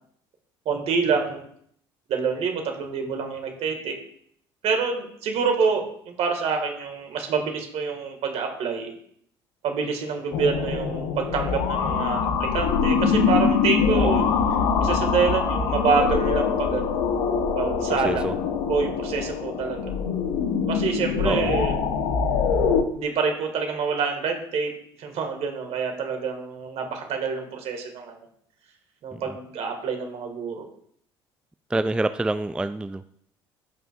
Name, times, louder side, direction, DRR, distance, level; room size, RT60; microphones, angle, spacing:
voice 1, 0.7-1.5 2.1-4.0 4.6-8.9 9.6-14.3 14.8-17.0 17.6-18.3 18.7-19.8 20.7-21.7 22.9-24.7 25.0-28.2 29.0-30.7, right 5 dB, 55° right, 4 dB, 2.0 m, -26 dB
sound 1, 10.3-22.8, left 6 dB, 70° left, 1.0 m, -24 dB
voice 2, 17.9-18.3 21.2-21.5 29.1-29.2 31.7-33.0, right 2 dB, 5° right, 12 dB, 0.3 m, -26 dB
13.5 x 5.7 x 2.6 m, 0.66 s
hypercardioid pair, 60°, 12 cm